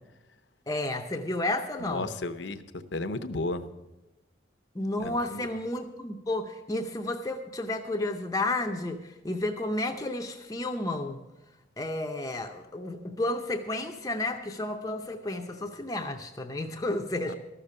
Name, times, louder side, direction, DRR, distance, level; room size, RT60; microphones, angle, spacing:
voice 1, 0.7-2.1 4.7-11.2 11.8-17.3, left 2 dB, 20° left, 4 dB, 0.6 m, -32 dB
voice 2, 1.8-2.6 2.9-3.6 5.0-5.4, left 2 dB, 80° left, 10 dB, 0.8 m, -33 dB
14.0 x 6.7 x 8.5 m, 1.0 s
head